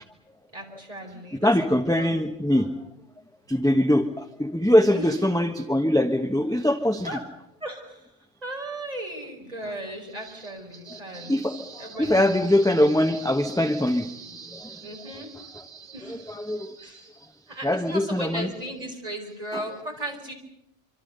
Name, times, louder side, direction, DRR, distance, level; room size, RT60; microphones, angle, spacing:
voice 1, 0.5-1.5 2.0-2.2 2.5-2.7 4.8-5.2 7.0-7.2 7.6-8.0 8.4-11.3 11.8-12.6 12.8-12.9 14.8-15.3 15.9-16.2 16.8-17.0 17.5-20.3, right 1 dB, 30° right, 2 dB, 5.4 m, -36 dB
voice 2, 1.4-2.7 3.5-7.2 9.6-9.7 10.2-10.4 10.9-17.1 17.6-18.5 19.5-19.6, left 1 dB, 5° left, 5 dB, 1.2 m, -24 dB
25.5 x 25.5 x 6.8 m, 0.79 s
omnidirectional pair, 1.2 m